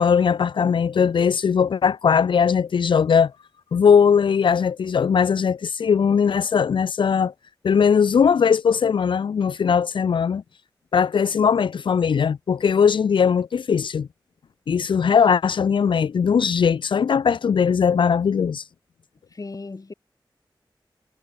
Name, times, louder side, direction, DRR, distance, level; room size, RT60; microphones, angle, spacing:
voice 1, 0.0-3.3 3.7-7.3 7.6-10.4 10.9-14.1 14.7-18.6, left 6 dB, 75° left, 0.4 m, -19 dB
voice 2, 19.3-19.9, left 3 dB, 45° left, 1.5 m, -37 dB
wide cardioid pair, 85°, 8 cm